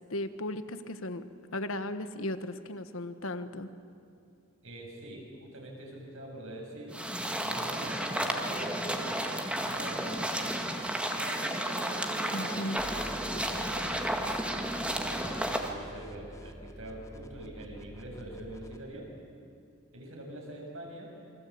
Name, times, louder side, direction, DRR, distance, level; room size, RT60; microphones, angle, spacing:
voice 1, 0.1-1.3 1.5-3.7 12.3-12.8, left 1 dB, 70° left, 11 dB, 1.4 m, -36 dB
voice 2, 4.6-7.0 7.4-10.4 11.1-12.7 13.2-14.1 14.8-19.1 19.9-21.1, right 1 dB, 65° right, 0 dB, 7.4 m, -44 dB
sound 1, 6.9-15.7, right 1 dB, 5° right, 1.8 m, -32 dB
sound 2, 12.8-18.8, equal, 15° left, 1.5 m, -48 dB
28.0 x 24.0 x 8.7 m, 2.4 s
head